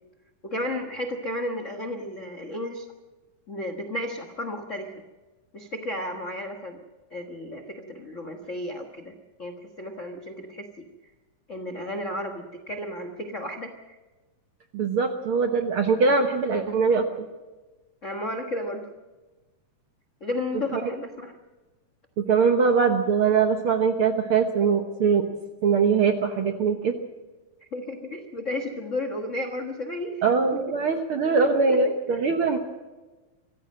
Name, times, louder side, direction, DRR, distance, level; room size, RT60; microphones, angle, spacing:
voice 1, 0.4-2.9 3.5-4.9 5.5-6.8 7.1-9.1 9.4-10.8 11.5-14.0 18.0-18.8 20.2-21.3 27.7-30.2 30.5-30.6 31.7-31.8 32.1-32.2, left 1 dB, 70° left, 6 dB, 0.7 m, -33 dB
voice 2, 14.7-17.1 20.7-20.8 22.2-25.3 25.6-26.9 30.2-32.6, right 5 dB, 65° right, 5 dB, 1.4 m, -22 dB
24.5 x 15.0 x 7.6 m, 1.2 s
omnidirectional pair, 3.8 m